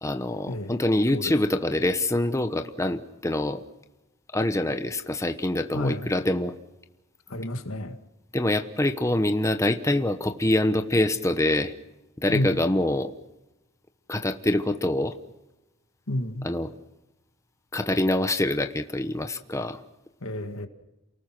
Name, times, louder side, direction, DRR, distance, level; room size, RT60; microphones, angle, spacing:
voice 1, 0.0-3.6 4.3-6.5 8.3-11.7 12.2-13.1 14.1-15.2 16.4-16.7 17.7-19.8, left 1 dB, 15° left, 7 dB, 0.9 m, -25 dB
voice 2, 5.7-6.1 7.3-7.9 12.3-12.5 16.1-16.5 20.2-20.7, left 1 dB, 85° left, 8 dB, 1.9 m, -30 dB
29.0 x 19.0 x 6.1 m, 0.99 s
head